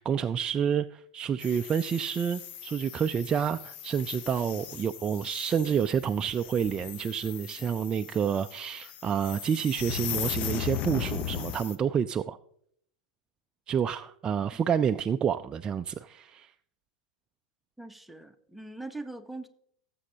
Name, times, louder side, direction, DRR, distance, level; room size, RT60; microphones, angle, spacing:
voice 1, 0.0-12.4 13.7-16.5, right 7 dB, 25° right, 8 dB, 0.4 m, -29 dB
sound 1, 1.4-11.8, left 10 dB, 45° left, 0.9 m, -38 dB
voice 2, 17.8-19.5, right 2 dB, ahead, 7 dB, 0.9 m, -41 dB
18.5 x 7.7 x 2.8 m, 0.69 s
hypercardioid pair, 95°, 4 cm